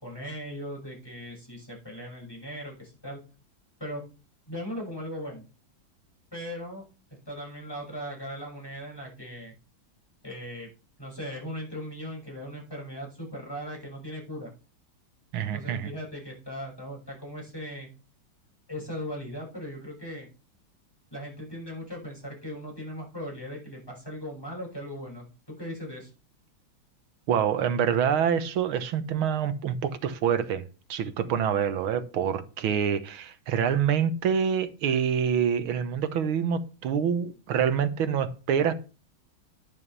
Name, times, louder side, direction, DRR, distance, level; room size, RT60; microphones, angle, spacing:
voice 1, 0.0-3.2 3.8-4.0 4.5-5.5 6.3-6.8 7.3-9.5 10.2-10.7 11.0-14.5 15.5-17.9 18.7-20.3 21.1-26.1, equal, 10° left, 6.2 m, -38 dB
voice 2, 15.3-15.9 27.3-30.6 30.9-38.7, right 8 dB, 90° right, 2.0 m, -26 dB
12.0 x 11.0 x 3.4 m
omnidirectional pair, 2.2 m